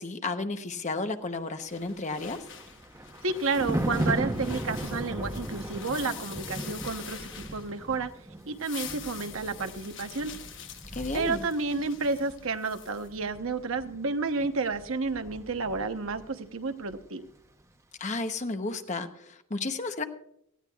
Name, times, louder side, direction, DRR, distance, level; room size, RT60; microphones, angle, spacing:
voice 1, 0.0-2.5 10.9-11.4 18.0-20.0, left 3 dB, 35° left, 8 dB, 0.9 m, -33 dB
sound 1, 1.7-8.0 8.4-13.1, left 9 dB, 55° left, 1.0 m, -46 dB
Thunder, 1.8-16.4 16.7-17.0, right 1 dB, 15° right, 0.9 m, -37 dB
voice 2, 3.2-8.1 8.5-10.3 11.1-17.3, right 3 dB, 70° right, 8 dB, 1.0 m, -31 dB
18.5 x 15.5 x 2.4 m, 0.75 s
head